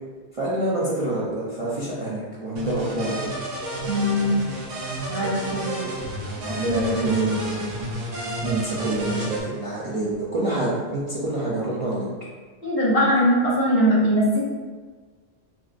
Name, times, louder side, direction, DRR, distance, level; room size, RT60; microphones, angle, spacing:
voice 1, 0.4-3.3 6.5-7.5 8.4-12.1, right 2 dB, 40° right, -8 dB, 0.5 m, -26 dB
sound 1, 2.6-9.4, right 1 dB, 85° right, 1.2 m, -31 dB
voice 2, 3.9-4.4 5.1-5.8 12.6-14.5, equal, 55° left, -7 dB, 1.3 m, -21 dB
5.9 x 2.0 x 2.5 m, 1.4 s
omnidirectional pair, 1.2 m